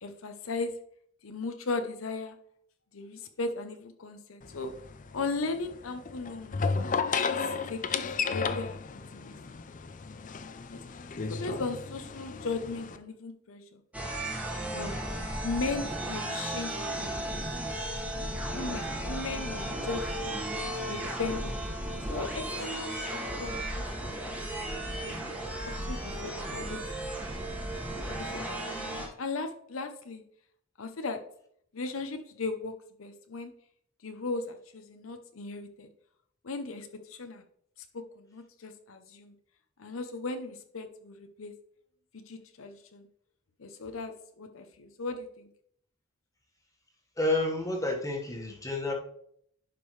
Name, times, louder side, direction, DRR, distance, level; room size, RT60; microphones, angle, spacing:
voice 1, 0.0-0.7 1.2-2.4 2.9-4.7 5.1-6.6 7.1-9.4 10.7-10.8 11.3-13.8 14.7-15.1 15.4-17.7 18.2-20.4 20.8-21.6 22.1-24.5 25.0-25.1 25.6-26.8 28.1-30.2 30.8-31.2 31.7-32.7 33.0-33.5 34.0-35.9 36.4-37.4 37.9-39.3 39.8-41.5 42.1-43.1 43.6-45.5, left 3 dB, 80° left, 7 dB, 0.8 m, -37 dB
sound 1, 4.4-13.0, left 5 dB, 40° left, 0.5 m, -34 dB
sound 2, 13.9-29.1, right 1 dB, 5° right, 1.5 m, -35 dB
voice 2, 47.2-48.9, left 2 dB, 15° left, 0 dB, 1.5 m, -29 dB
11.0 x 5.2 x 3.2 m, 0.67 s
head